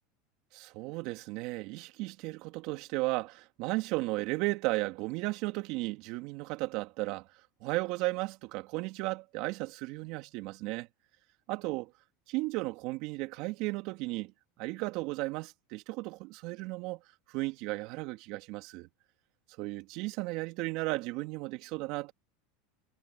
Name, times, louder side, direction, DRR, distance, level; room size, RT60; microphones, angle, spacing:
voice 1, 0.5-7.3 7.6-10.9 11.5-11.9 12.3-14.3 14.6-17.0 17.3-18.9 19.6-22.1, right 22 dB, 60° right, 2.9 m, -35 dB
hypercardioid pair, 105°, 0 cm